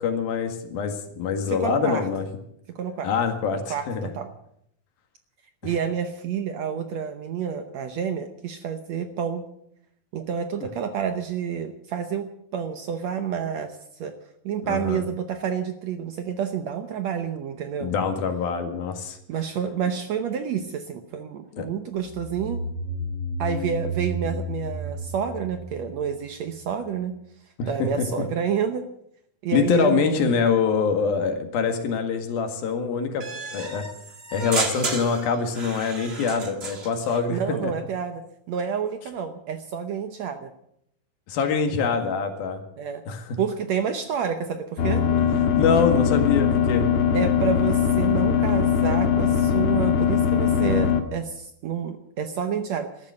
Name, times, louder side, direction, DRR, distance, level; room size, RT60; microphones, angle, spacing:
voice 1, 0.0-2.3 3.0-4.1 5.6-5.7 14.6-15.0 17.8-19.2 21.5-21.7 27.6-28.3 29.5-33.3 33.5-33.8 34.3-37.7 41.3-42.6 43.1-43.4 45.2-46.8, left 5 dB, 85° left, 6 dB, 3.7 m, -25 dB
voice 2, 1.5-2.1 2.7-3.1 3.7-4.3 5.6-9.4 10.1-12.3 12.5-14.1 14.4-17.9 19.3-22.6 23.4-27.1 27.7-28.9 29.4-30.3 37.3-38.2 38.5-40.5 42.8-43.0 43.4-45.1 47.1-53.1, right 7 dB, 70° right, 8 dB, 1.7 m, -29 dB
sound 1, 22.1-26.6, right 1 dB, 35° left, 2.0 m, -32 dB
sound 2, 33.2-37.2, right 3 dB, 45° right, 0.8 m, -32 dB
sound 3, 44.8-51.0, left 8 dB, 55° left, 2.3 m, -21 dB
13.5 x 13.0 x 7.7 m, 0.73 s
omnidirectional pair, 4.1 m